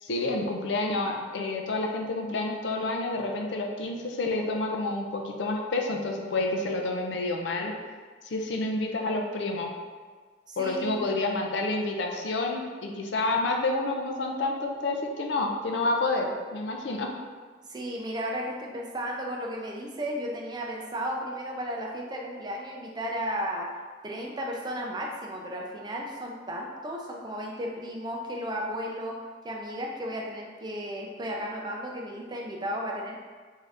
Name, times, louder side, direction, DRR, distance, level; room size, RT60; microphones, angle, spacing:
voice 1, 0.0-7.7 8.3-9.7 10.6-17.1, left 2 dB, 75° left, 1 dB, 0.5 m, -29 dB
voice 2, 10.5-11.0 17.7-23.7 24.0-29.2 29.4-33.2, equal, 25° right, -1 dB, 0.4 m, -34 dB
3.6 x 2.7 x 3.3 m, 1.5 s
head